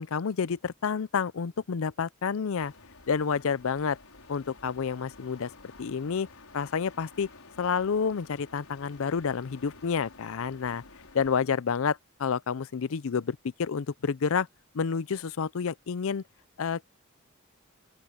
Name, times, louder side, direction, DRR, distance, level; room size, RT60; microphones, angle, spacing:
voice 1, 0.0-2.7 3.1-4.0 4.3-5.5 5.8-6.3 6.5-7.3 7.6-10.8 11.1-14.5 14.7-16.2 16.6-16.8, left 6 dB, 65° left, 0.5 m, -29 dB
sound 1, 2.6-11.4, left 3 dB, 80° left, 5.1 m, -52 dB
open air
head